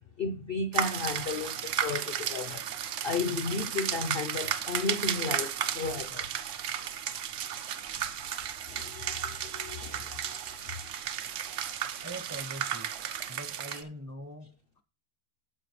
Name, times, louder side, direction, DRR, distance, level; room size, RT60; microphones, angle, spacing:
voice 1, 0.2-2.6 3.0-6.4 6.7-7.2 7.5-7.9 8.2-11.1 11.4-11.7 12.0-12.1 13.7-13.8, left 4 dB, 60° left, 0.6 m, -35 dB
sound 1, 0.7-13.8, right 9 dB, 65° right, 0.9 m, -34 dB
voice 2, 12.0-12.9 13.3-14.8, right 1 dB, 20° right, 0.4 m, -43 dB
10.0 x 7.4 x 3.2 m
omnidirectional pair, 1.6 m